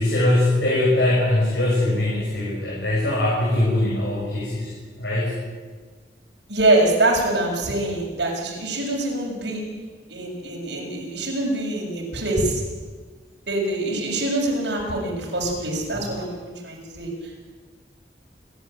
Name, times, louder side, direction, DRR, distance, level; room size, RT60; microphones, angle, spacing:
voice 1, 0.0-5.3 15.9-16.0, left 1 dB, 75° left, -5 dB, 7.0 m, -22 dB
voice 2, 6.5-9.6 10.1-12.6 13.5-17.5, right 2 dB, 75° right, -1 dB, 6.8 m, -24 dB
29.0 x 13.0 x 8.9 m, 1.5 s
head